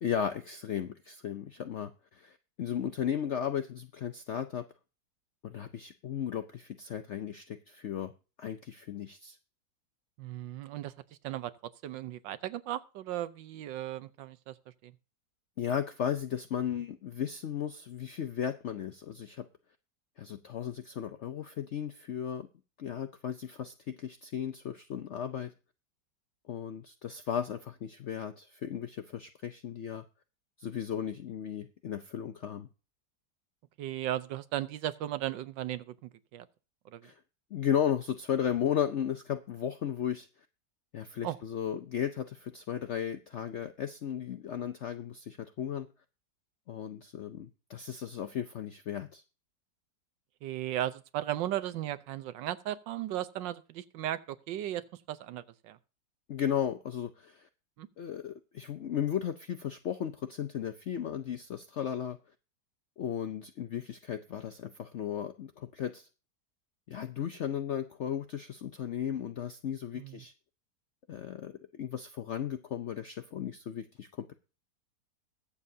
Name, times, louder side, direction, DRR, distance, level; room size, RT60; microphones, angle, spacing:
voice 1, 0.0-4.6 5.4-8.1 8.4-9.4 15.6-19.4 20.2-22.5 22.8-25.5 26.5-30.0 30.6-32.7 37.0-37.1 37.5-40.3 40.9-45.9 46.7-49.2 56.3-57.5 58.0-62.2 63.0-66.1 66.9-70.3 71.1-74.3, left 9 dB, 75° left, 0.6 m, -35 dB
voice 2, 10.2-10.9 11.2-14.5 14.8-14.9 33.8-36.5 36.8-37.1 41.2-41.4 50.4-55.8 57.8-57.9 69.9-70.2, right 12 dB, 90° right, 1.5 m, -36 dB
21.5 x 7.3 x 2.7 m
omnidirectional pair, 1.9 m